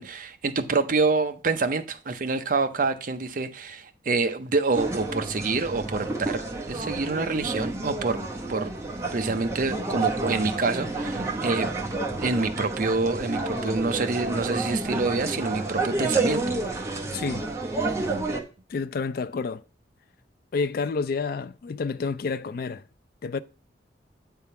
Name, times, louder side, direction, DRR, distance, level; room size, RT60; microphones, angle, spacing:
voice 1, 0.0-6.4 6.7-8.2 8.5-8.7 9.1-11.7 12.2-16.4 16.7-16.8, right 3 dB, 45° right, 0.6 m, -27 dB
sound 1, 4.7-18.4, right 3 dB, 15° right, 0.9 m, -30 dB
voice 2, 18.7-19.6 20.5-22.8 23.2-23.4, left 4 dB, 55° left, 0.3 m, -29 dB
8.3 x 3.6 x 5.6 m
head